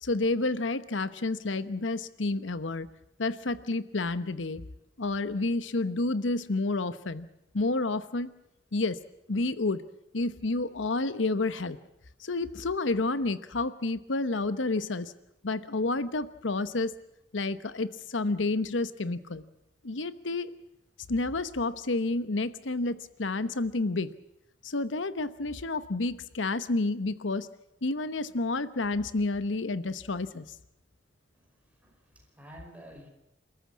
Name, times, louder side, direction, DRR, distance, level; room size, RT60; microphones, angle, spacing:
voice 1, 0.0-2.9 3.2-4.6 5.0-7.3 7.5-8.3 8.7-9.0 9.3-9.8 10.1-11.8 12.2-15.1 15.4-16.9 17.3-19.4 19.8-20.5 21.1-24.1 24.6-27.5 27.8-30.4, left 2 dB, 90° left, 14 dB, 1.0 m, -30 dB
voice 2, 31.3-33.1, equal, 10° right, 2 dB, 5.2 m, -51 dB
28.5 x 14.0 x 8.5 m, 0.84 s
head